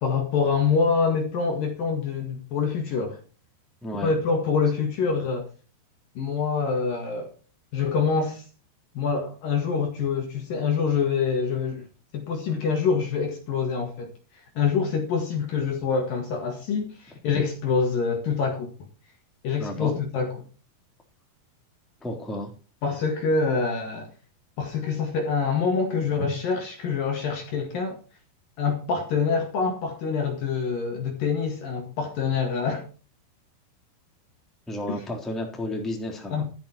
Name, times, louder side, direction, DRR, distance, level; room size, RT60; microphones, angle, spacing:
voice 1, 0.0-3.2 4.0-5.5 6.2-7.3 7.7-8.4 8.9-11.9 12.1-14.1 14.6-18.7 19.4-20.4 22.8-24.1 24.6-28.0 28.6-32.9 36.3-36.4, left 5 dB, 60° left, 3.2 m, -25 dB
voice 2, 3.8-4.1 19.6-20.0 22.0-22.5 34.7-36.4, left 1 dB, ahead, 2.9 m, -32 dB
13.0 x 10.5 x 4.4 m
omnidirectional pair, 5.1 m